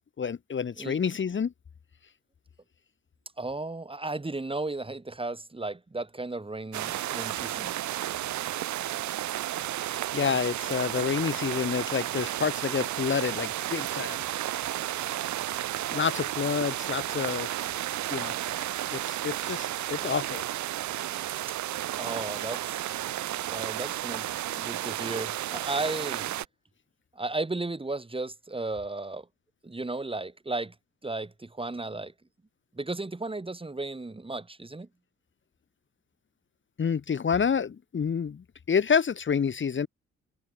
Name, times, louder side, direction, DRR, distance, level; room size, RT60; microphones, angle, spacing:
voice 1, 0.2-1.5 10.1-14.2 15.9-17.6 18.1-18.3 18.9-20.4 36.8-39.9, left 6 dB, 40° left, 1.5 m, -28 dB
voice 2, 3.4-7.7 22.0-22.8 23.1-24.3 24.6-26.3 27.1-29.3 29.6-30.8 31.0-32.1 32.7-34.9, right 2 dB, 20° right, 3.4 m, -34 dB
sound 1, 6.7-26.5, right 13 dB, 70° right, 1.2 m, -32 dB
supercardioid pair, 70°, 30 cm